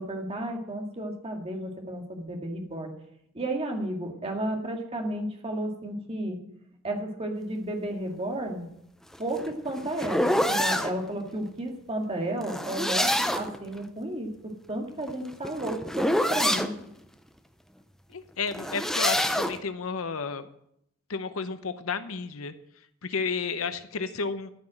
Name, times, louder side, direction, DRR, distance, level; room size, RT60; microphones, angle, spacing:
voice 1, 0.0-2.9 3.3-6.4 6.8-8.7 9.2-16.7, right 1 dB, 30° right, 2 dB, 2.0 m, -33 dB
sound 1, 9.1-10.9 12.4-13.6 15.0-16.7 18.5-19.6, equal, ahead, 0.7 m, -26 dB
voice 2, 18.1-20.5 21.1-22.5 23.0-24.5, left 5 dB, 70° left, 12 dB, 0.8 m, -32 dB
13.5 x 6.1 x 7.7 m, 0.75 s
head